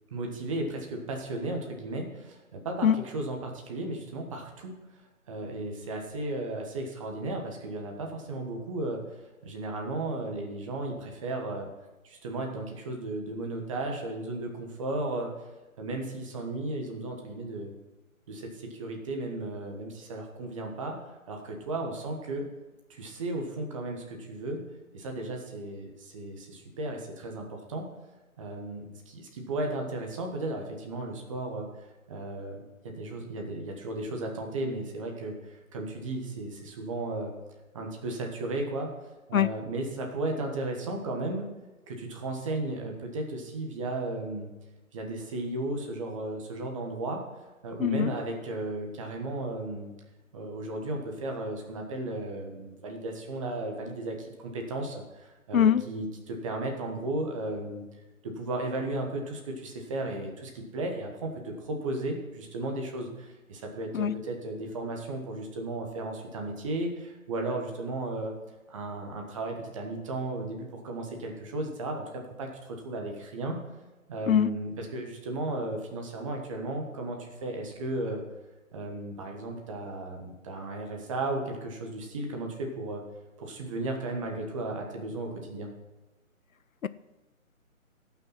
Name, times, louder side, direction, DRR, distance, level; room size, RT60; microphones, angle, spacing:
voice 1, 0.1-4.8 5.3-9.0 9.4-11.7 12.0-15.3 15.8-17.7 18.3-21.0 21.3-22.5 22.9-24.6 24.9-27.9 28.4-31.7 32.1-37.3 37.7-38.9 39.3-41.5 41.9-44.5 44.9-47.2 47.6-49.9 50.3-57.8 58.2-68.3 68.7-73.6 74.1-78.2 78.7-83.0 83.4-85.7, right 2 dB, 25° right, 2 dB, 1.4 m, -35 dB
voice 2, 2.8-2.9 39.3-39.5 47.8-48.1 55.5-55.8 63.9-64.1 74.3-74.5 86.8-86.9, left 8 dB, 70° left, 16 dB, 0.6 m, -22 dB
17.0 x 6.0 x 5.8 m, 1.1 s
figure-of-eight pair, 145°, 42 cm